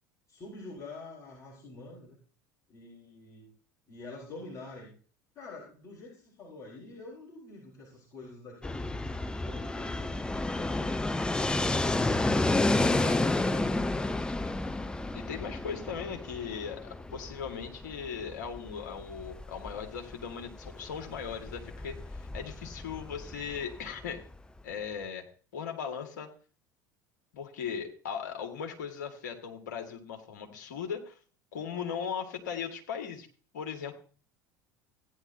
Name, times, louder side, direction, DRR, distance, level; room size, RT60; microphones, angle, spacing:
voice 1, 0.3-2.2 2.7-3.5 3.9-4.9 5.3-9.2 9.4-11.0, left 2 dB, 35° left, -4 dB, 4.3 m, -47 dB
Fixed-wing aircraft airplane, 8.6-24.3, left 2 dB, 10° left, 0.6 m, -31 dB
voice 2, 12.8-13.2 15.1-24.2 24.6-25.3 25.5-26.3 27.3-31.2 31.5-33.3 33.5-33.9, left 7 dB, 65° left, 3 dB, 1.9 m, -38 dB
16.0 x 9.8 x 2.7 m, 0.40 s
figure-of-eight pair, 70°, 10 cm